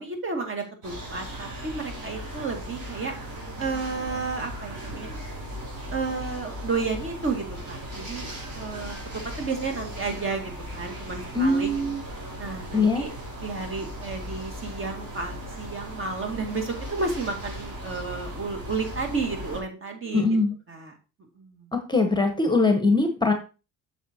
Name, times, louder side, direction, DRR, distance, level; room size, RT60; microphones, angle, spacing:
voice 1, 0.0-3.1 3.6-5.1 5.9-8.3 8.5-9.0 9.4-11.7 12.4-13.1 13.4-20.3 20.7-20.9 21.4-21.7, right 4 dB, 35° right, 4 dB, 2.2 m, -32 dB
sound 1, 0.8-19.6, equal, 60° right, 4.8 m, -37 dB
voice 2, 11.3-12.0 12.7-13.0 20.1-20.6 21.7-23.3, left 3 dB, 15° left, 5 dB, 1.2 m, -22 dB
7.3 x 6.8 x 2.9 m, 0.31 s
cardioid pair, 90°, 35 cm